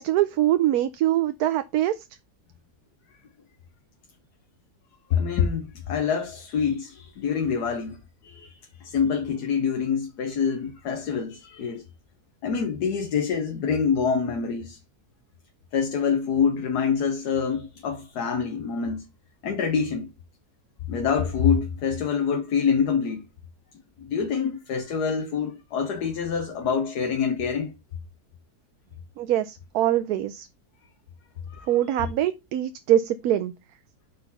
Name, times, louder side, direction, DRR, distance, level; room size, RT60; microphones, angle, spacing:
voice 1, 0.0-2.1 29.2-30.5 31.7-33.5, right 12 dB, 75° right, 1.1 m, -23 dB
voice 2, 5.1-11.8 12.4-14.8 15.7-19.1 19.4-20.1 20.9-23.2 24.0-27.7 31.5-31.7, left 6 dB, 85° left, 1.5 m, -26 dB
5.9 x 5.0 x 5.6 m
omnidirectional pair, 1.7 m